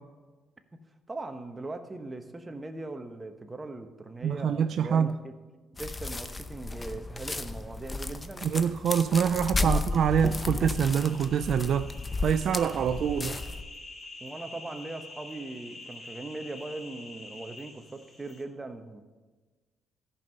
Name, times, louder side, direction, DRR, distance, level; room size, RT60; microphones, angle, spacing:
voice 1, 1.1-5.3 5.7-8.5 9.2-9.3 9.5-9.8 14.2-19.0, right 2 dB, 20° right, 1.0 m, -40 dB
voice 2, 4.2-5.2 8.4-11.9 12.2-13.4, right 8 dB, 65° right, 0.3 m, -25 dB
sound 1, 5.8-13.6, left 3 dB, 20° left, 0.7 m, -33 dB
sound 2, 9.9-18.4, left 2 dB, 45° left, 3.4 m, -47 dB
14.0 x 5.4 x 5.4 m
cardioid pair, 90°, 0 cm